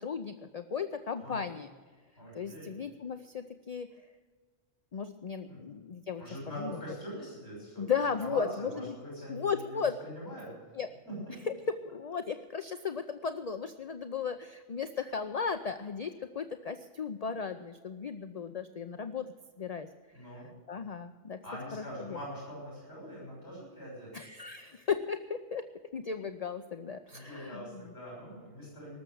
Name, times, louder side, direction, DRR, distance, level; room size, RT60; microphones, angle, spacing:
voice 1, 0.0-1.7 2.3-3.9 4.9-6.2 6.6-6.8 7.8-9.0 9.3-9.9 10.7-10.9 11.5-11.6 11.9-19.3 19.6-19.9 20.7-21.4 21.7-22.2 24.1-25.6 25.9-27.9, left 6 dB, 45° left, 9 dB, 0.6 m, -35 dB
voice 2, 2.2-2.7 5.5-5.6 6.2-10.5 11.0-11.4 20.1-20.5 21.4-24.1 27.1-29.0, equal, 80° left, -4 dB, 6.2 m, -43 dB
18.5 x 7.2 x 7.8 m, 1.5 s
omnidirectional pair, 1.1 m